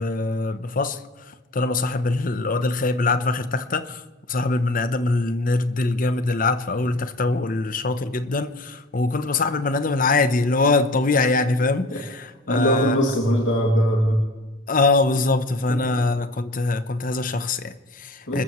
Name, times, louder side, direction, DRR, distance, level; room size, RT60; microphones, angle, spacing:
voice 1, 0.0-13.0 14.7-18.4, left 3 dB, 45° left, 0.9 m, -23 dB
voice 2, 12.5-14.2 15.7-15.8 18.3-18.4, equal, 75° left, 2.5 m, -21 dB
27.5 x 14.0 x 3.2 m
head